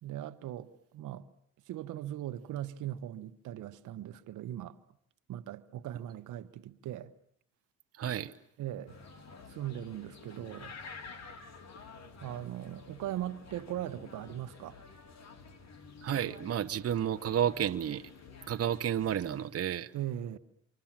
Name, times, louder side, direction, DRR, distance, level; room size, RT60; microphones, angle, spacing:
voice 1, 0.0-1.3 1.7-4.8 5.3-7.1 8.6-9.0 9.5-10.7 12.2-14.8 19.9-20.4, right 12 dB, 85° right, 1.1 m, -39 dB
voice 2, 8.0-8.3 16.0-18.0 18.5-19.9, right 9 dB, 50° right, 1.1 m, -31 dB
sound 1, 8.9-19.5, left 4 dB, 60° left, 3.5 m, -50 dB
28.5 x 25.0 x 7.4 m
cardioid pair, 90°, 30 cm